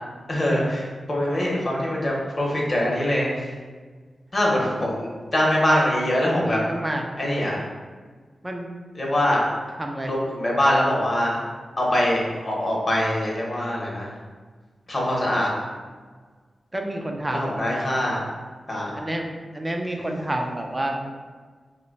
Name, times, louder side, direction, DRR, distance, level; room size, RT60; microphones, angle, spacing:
voice 1, 0.3-3.5 4.3-6.6 7.2-7.6 8.9-9.4 10.0-11.4 11.8-14.1 14.9-15.5 17.3-18.2 18.7-18.9, left 1 dB, 40° left, -3 dB, 0.9 m, -23 dB
voice 2, 6.3-7.0 8.4-8.7 9.1-9.3 9.8-10.1 16.7-17.6 18.9-19.3 19.5-21.0, right 1 dB, 20° right, 2 dB, 0.4 m, -29 dB
2.8 x 2.2 x 3.9 m, 1.5 s
wide cardioid pair, 80°, 0 cm